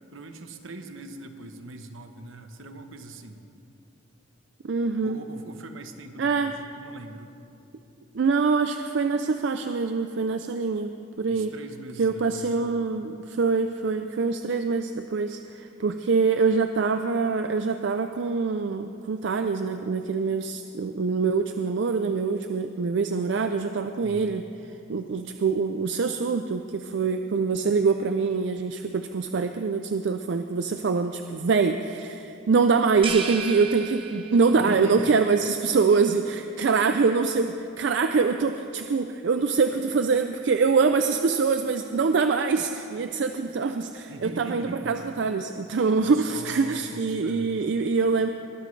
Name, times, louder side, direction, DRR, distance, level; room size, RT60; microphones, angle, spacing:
voice 1, 0.1-3.4 5.0-7.3 11.3-12.7 24.0-24.3 34.5-35.1 44.1-44.9 46.0-47.5, right 2 dB, 75° right, 7 dB, 1.0 m, -41 dB
voice 2, 4.6-5.2 6.2-6.5 8.1-10.9 11.2-11.5 12.0-24.4 24.9-48.3, right 4 dB, 60° right, 7 dB, 0.4 m, -24 dB
sound 1, 33.0-34.7, right 6 dB, 25° right, 0.8 m, -34 dB
21.0 x 12.5 x 3.2 m, 2.7 s
head